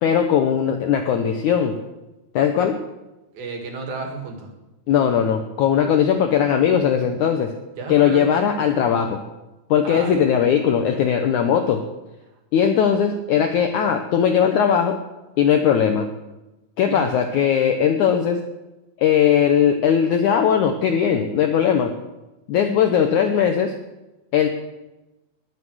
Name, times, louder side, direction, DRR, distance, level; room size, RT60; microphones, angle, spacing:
voice 1, 0.0-1.8 2.4-2.8 4.9-7.5 7.9-9.2 9.7-11.8 12.5-15.0 15.4-16.1 16.8-18.4 19.0-21.9 22.5-23.8 24.3-24.5, left 8 dB, 80° left, 5 dB, 1.8 m, -19 dB
voice 2, 3.3-4.5 7.8-8.5 9.8-10.2 16.9-17.2, right 4 dB, 70° right, 3 dB, 3.8 m, -32 dB
20.5 x 7.5 x 6.4 m, 1.0 s
omnidirectional pair, 4.5 m